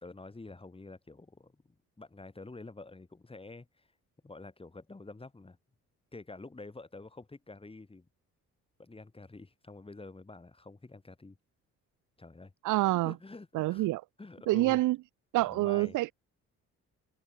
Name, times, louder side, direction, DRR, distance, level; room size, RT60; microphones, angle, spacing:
voice 1, 0.0-3.9 4.2-5.6 6.1-8.1 8.8-11.4 12.2-12.5 13.0-13.9 14.2-14.8 15.4-16.0, left 3 dB, 20° left, 3.4 m, -48 dB
voice 2, 12.6-13.1 13.5-14.0 14.5-15.0 15.3-16.1, right 18 dB, 80° right, 0.6 m, -27 dB
cardioid pair, 90°, 30 cm